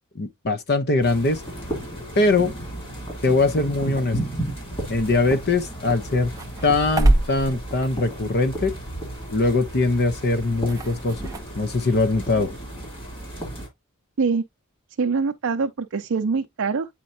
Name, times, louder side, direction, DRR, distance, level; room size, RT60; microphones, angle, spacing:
voice 1, 0.1-1.4 2.2-2.5 3.2-4.2 4.9-6.3 6.6-8.7 9.3-11.3 11.6-12.5, left 3 dB, 45° left, 0.7 m, -22 dB
sound 1, 1.0-13.7, right 1 dB, 25° left, 2.7 m, -34 dB
sound 2, 5.1-11.4, right 1 dB, 15° right, 0.7 m, -28 dB
voice 2, 15.0-16.9, right 5 dB, 60° right, 0.5 m, -24 dB
8.5 x 4.4 x 2.6 m
head